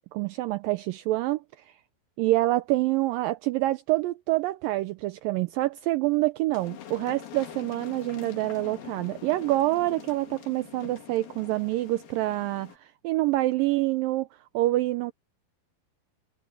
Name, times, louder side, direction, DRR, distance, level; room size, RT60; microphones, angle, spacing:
voice 1, 0.1-1.4 2.2-14.3 14.5-15.1, right 17 dB, 85° right, 2.0 m, -26 dB
sound 1, 6.5-12.8, left 11 dB, 65° left, 3.8 m, -44 dB
omnidirectional pair, 4.6 m